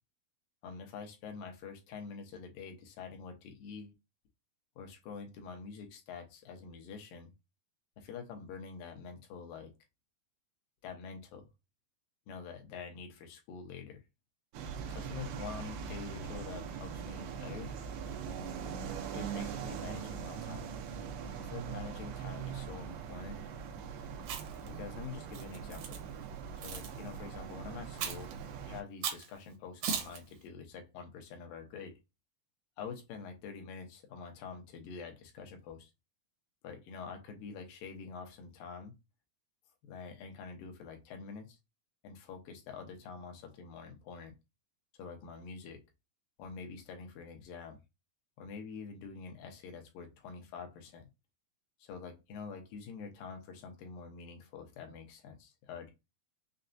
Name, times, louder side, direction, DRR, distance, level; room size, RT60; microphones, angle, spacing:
voice 1, 0.6-3.9 4.8-7.3 8.0-9.7 10.8-11.5 12.3-14.0 14.9-17.7 19.1-20.7 21.4-23.4 24.7-26.0 26.6-28.3 28.6-32.0 32.8-35.9 36.6-38.9 39.8-41.6 42.0-44.3 44.9-45.8 46.4-47.8 48.4-51.1 51.8-55.9, left 5 dB, 75° left, 2.4 m, -46 dB
sound 1, 14.5-28.8, right 7 dB, 90° right, 2.7 m, -41 dB
Chewing mastication, 24.2-24.7 25.3-26.0 26.6-26.9 28.0-28.3 29.0-29.3 29.8-30.2, right 7 dB, 70° right, 2.0 m, -37 dB
6.6 x 2.3 x 2.6 m
omnidirectional pair, 4.3 m